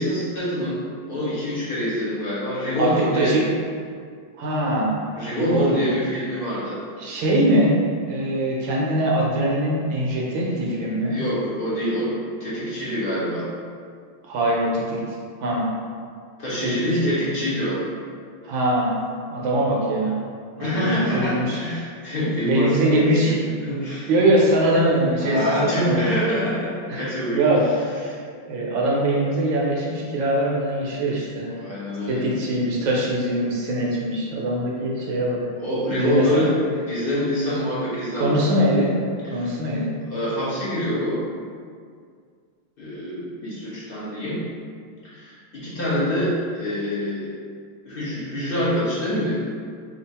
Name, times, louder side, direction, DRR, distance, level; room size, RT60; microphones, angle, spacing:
voice 1, 0.0-3.4 5.1-6.8 11.1-12.1 12.4-13.5 16.4-17.8 20.6-24.1 25.2-27.4 31.0-31.1 31.4-32.3 35.6-36.5 36.9-38.4 39.2-39.5 40.1-41.2 42.8-44.4 45.0-47.3 47.8-49.4, equal, 40° left, -10 dB, 0.8 m, -25 dB
voice 2, 2.8-3.4 4.4-5.9 7.0-7.8 8.1-11.2 14.2-15.0 15.4-15.7 16.6-17.1 18.4-19.0 19.3-20.2 20.6-21.6 22.4-23.4 24.1-25.4 25.8-26.1 26.9-27.6 27.9-28.1 28.5-31.5 32.1-35.4 36.0-36.4 38.1-38.9 39.3-39.9, right 1 dB, 75° right, -3 dB, 1.4 m, -22 dB
3.5 x 2.4 x 4.1 m, 2.1 s
omnidirectional pair, 2.2 m